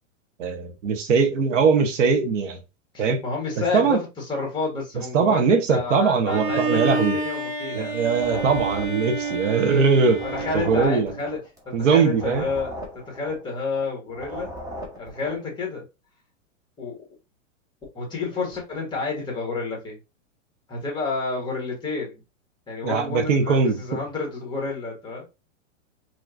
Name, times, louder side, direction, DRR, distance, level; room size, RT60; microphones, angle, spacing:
voice 1, 0.4-2.6 3.0-3.2 3.7-4.0 5.1-7.2 7.7-10.2 10.5-11.1 11.7-12.5 22.8-23.8, right 5 dB, 70° right, 1.2 m, -21 dB
voice 2, 2.9-7.9 10.3-11.4 11.6-14.5 15.0-15.8 16.8-17.0 17.9-20.0 20.7-22.2 22.7-25.2, left 4 dB, 10° left, 1.7 m, -30 dB
Bowed string instrument, 6.3-11.3, right 3 dB, 50° right, 1.8 m, -29 dB
sound 1, 8.1-9.9 10.1-13.9 14.1-15.5, equal, 10° right, 0.9 m, -37 dB
5.0 x 3.1 x 2.5 m
hypercardioid pair, 145°, 38 cm